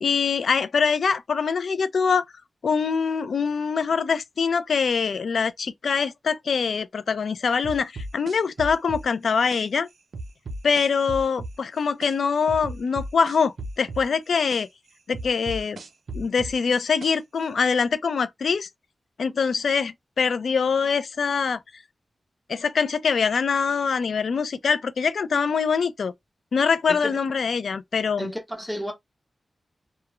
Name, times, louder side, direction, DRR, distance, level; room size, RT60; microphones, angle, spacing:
voice 1, 0.0-2.3 2.6-9.9 10.6-14.7 15.1-15.8 16.1-18.7 19.2-21.6 22.5-26.1 26.5-28.3, left 5 dB, 80° left, 0.3 m, -24 dB
sound 1, 7.6-9.6 10.1-12.1 12.5-14.6 15.1-17.4, right 2 dB, 90° right, 0.5 m, -35 dB
voice 2, 26.9-27.2 28.2-28.9, equal, 5° left, 0.7 m, -31 dB
2.3 x 2.0 x 2.9 m
wide cardioid pair, 140°, 0 cm